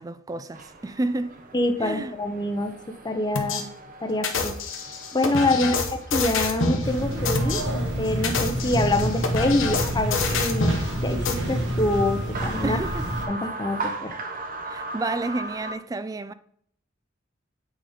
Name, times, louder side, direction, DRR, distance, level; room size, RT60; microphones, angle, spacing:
voice 1, 0.0-1.4 1.8-2.1 5.6-5.7 12.6-13.1 14.7-16.3, right 2 dB, 20° right, 0.3 m, -30 dB
sound 1, 0.5-15.7, right 3 dB, 45° right, 0.9 m, -39 dB
voice 2, 1.5-2.7 3.0-3.7 4.0-4.6 5.1-5.8 6.1-7.6 8.0-10.7 11.0-12.8 13.3-14.1, left 1 dB, 20° left, 0.7 m, -25 dB
sound 2, 3.3-3.6 4.2-6.8 7.2-7.6 8.1-10.8 11.2-11.3, left 4 dB, 75° left, 1.0 m, -26 dB
sound 3, 6.8-13.2, right 1 dB, 60° right, 1.7 m, -28 dB
8.5 x 5.1 x 3.6 m
head